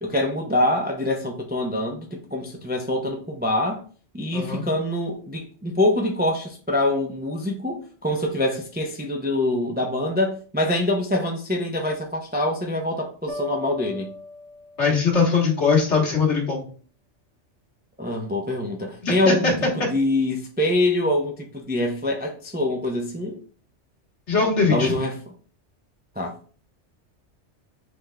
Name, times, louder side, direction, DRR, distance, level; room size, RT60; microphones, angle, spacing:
voice 1, 0.0-3.8 4.1-14.1 18.0-19.5 19.9-23.4 24.7-25.2 26.2-26.3, left 1 dB, 15° right, 0.3 m, -25 dB
voice 2, 4.3-4.6 14.8-16.6 19.0-19.5 24.3-24.9, left 4 dB, 70° left, 1.6 m, -21 dB
sound 1, 13.3-15.2, left 2 dB, 75° right, 1.2 m, -37 dB
5.9 x 3.5 x 2.2 m
omnidirectional pair, 1.2 m